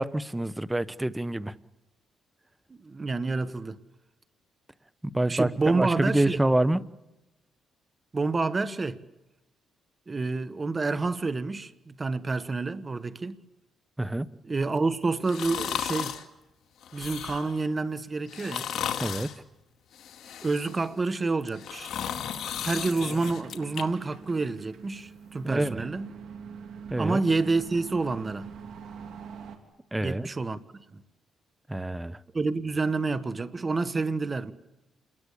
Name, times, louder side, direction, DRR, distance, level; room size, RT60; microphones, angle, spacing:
voice 1, 0.0-1.5 5.0-6.8 14.0-14.3 19.0-19.3 25.4-25.8 26.9-27.2 29.9-30.3 31.7-32.2, right 1 dB, 10° right, 1.0 m, -27 dB
voice 2, 2.8-3.8 5.3-6.4 8.1-9.0 10.1-13.3 14.4-16.2 16.9-18.7 20.4-21.9 22.6-26.1 27.0-28.5 30.0-30.6 30.9-31.0 32.3-34.5, right 3 dB, 30° right, 1.5 m, -28 dB
sound 1, 15.3-16.2 16.8-17.6 18.3-19.4 19.9-20.9 21.4-23.8 24.2-24.3, left 9 dB, 70° left, 2.2 m, -35 dB
sound 2, 22.3-29.6, right 6 dB, 70° right, 3.5 m, -44 dB
28.0 x 21.0 x 8.5 m
cardioid pair, 90°, 0 cm